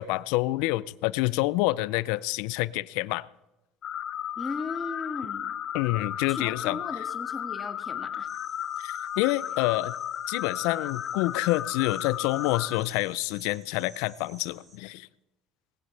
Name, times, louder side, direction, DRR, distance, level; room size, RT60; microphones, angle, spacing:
voice 1, 0.0-3.3 5.7-6.8 8.8-9.9 10.3-15.1, left 19 dB, 75° left, 19 dB, 0.5 m, -27 dB
sound 1, 3.8-12.8, left 10 dB, 50° left, 1.1 m, -34 dB
voice 2, 4.4-5.6 6.3-8.3, left 3 dB, 25° left, 5 dB, 2.0 m, -37 dB
sound 2, 8.2-14.8, right 4 dB, 40° right, 4.1 m, -54 dB
20.0 x 16.0 x 3.4 m, 0.99 s
hypercardioid pair, 75°, 0 cm